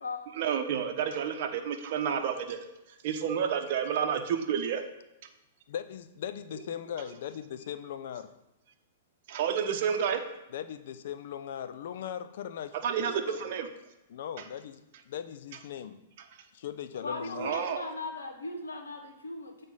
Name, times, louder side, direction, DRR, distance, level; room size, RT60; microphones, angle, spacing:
voice 1, 0.4-2.6 2.9-4.8 9.3-10.2 12.8-13.7 17.4-17.9, right 7 dB, 55° right, 5 dB, 0.8 m, -30 dB
voice 2, 5.7-8.3 10.5-13.4 14.1-16.0 16.5-17.5, left 9 dB, 65° left, 11 dB, 0.5 m, -39 dB
voice 3, 17.0-19.6, left 2 dB, 85° left, 4 dB, 1.1 m, -38 dB
7.9 x 3.5 x 5.5 m, 0.92 s
hypercardioid pair, 115°, 0 cm